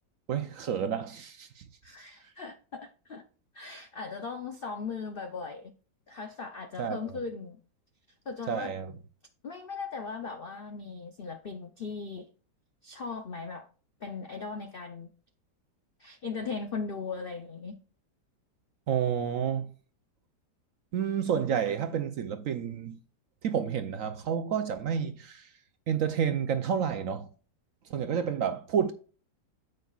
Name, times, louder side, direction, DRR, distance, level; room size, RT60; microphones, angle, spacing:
voice 1, 0.3-1.7 6.8-7.1 8.5-8.9 18.9-19.7 20.9-23.0 23.4-25.5 25.9-27.3 27.9-28.9, right 8 dB, 65° right, 0.9 m, -30 dB
voice 2, 1.8-3.2 3.5-5.7 6.1-7.6 8.3-8.7 9.4-12.3 12.8-13.7 14.0-15.1 16.0-17.8, left 4 dB, 65° left, 0.5 m, -38 dB
9.3 x 7.8 x 2.4 m
omnidirectional pair, 1.8 m